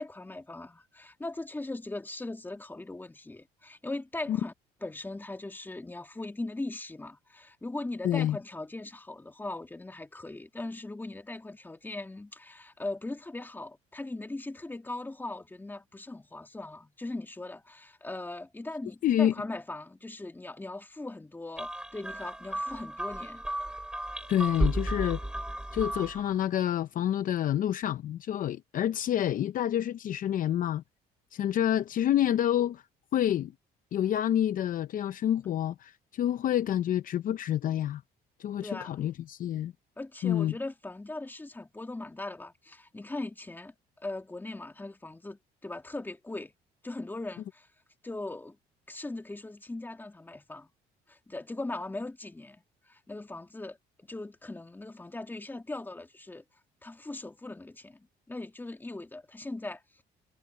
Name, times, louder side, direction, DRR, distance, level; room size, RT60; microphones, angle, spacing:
voice 1, 0.0-4.5 4.8-23.5 38.6-39.0 40.0-46.5 46.8-47.7 48.0-48.6 48.9-50.7 51.1-53.8 54.1-56.4 56.8-60.0, left 2 dB, 10° left, 2.6 m, -39 dB
voice 2, 8.0-8.4 19.0-19.3 24.3-25.2 25.7-30.8 31.3-32.8 33.1-33.5 33.9-38.0 38.4-39.7 40.2-40.5, left 11 dB, 55° left, 0.7 m, -28 dB
sound 1, 21.6-26.3, right 1 dB, 5° right, 1.6 m, -34 dB
cardioid pair, 110°, 17 cm